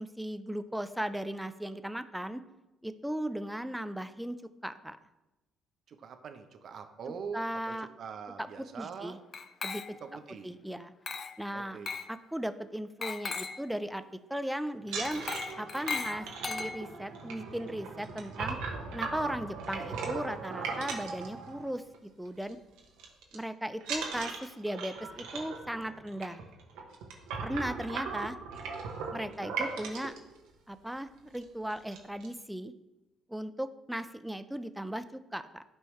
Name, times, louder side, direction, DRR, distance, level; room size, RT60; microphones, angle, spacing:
voice 1, 0.0-2.4 2.8-4.4 4.6-5.0 7.1-7.9 8.4-9.2 9.6-9.8 10.4-10.9 11.4-11.8 12.1-14.0 14.3-15.2 15.6-18.6 18.9-22.6 23.3-26.4 27.4-28.4 29.1-30.1 30.7-32.7 33.3-35.6, right 1 dB, 5° right, 11 dB, 0.6 m, -37 dB
voice 2, 5.9-9.2 10.0-10.5 11.5-11.9 29.3-29.4, right 6 dB, 60° right, 7 dB, 0.9 m, -43 dB
Glass, 9.3-10.2 11.1-11.4 11.9-12.2 13.0-13.7 15.0-17.1, left 5 dB, 45° left, 0.5 m, -38 dB
sound 1, 14.8-22.0 22.3-22.5 22.8-23.4 23.8-30.2 30.9-31.0 31.3-31.4 31.7-32.3, right 5 dB, 80° right, 1.2 m, -38 dB
11.5 x 4.6 x 3.3 m, 0.99 s
hypercardioid pair, 55°, 0 cm